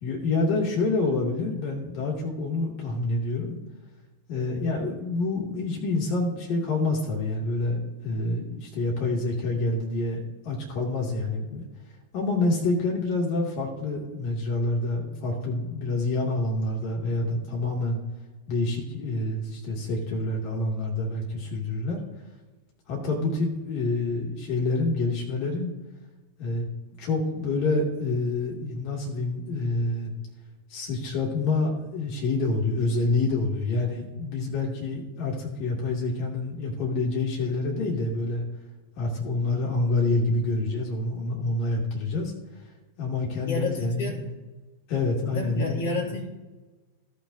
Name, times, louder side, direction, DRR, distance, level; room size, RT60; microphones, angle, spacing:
voice 1, 0.0-3.6 4.3-10.2 10.4-11.7 12.1-18.0 18.5-22.0 22.9-25.7 26.4-26.7 27.0-30.1 30.7-38.4 39.0-42.6 43.0-44.3 44.9-46.1, left 2 dB, 45° left, -2 dB, 2.6 m, -27 dB
voice 2, 43.4-44.2 45.3-46.3, left 3 dB, 60° left, -2 dB, 2.9 m, -30 dB
17.0 x 6.0 x 2.8 m, 1.2 s
figure-of-eight pair, 90°, 0 cm